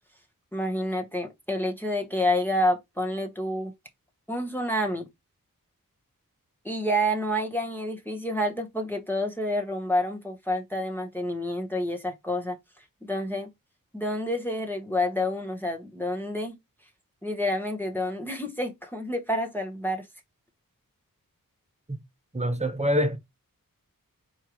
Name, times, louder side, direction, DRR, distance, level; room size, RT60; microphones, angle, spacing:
voice 1, 0.5-3.7 4.3-5.1 6.6-12.6 13.0-13.5 13.9-16.6 17.2-20.0, left 1 dB, 5° left, 1.1 m, -28 dB
voice 2, 22.3-23.2, equal, 20° right, 1.0 m, -25 dB
4.5 x 3.6 x 3.0 m
cardioid pair, 50°, 35 cm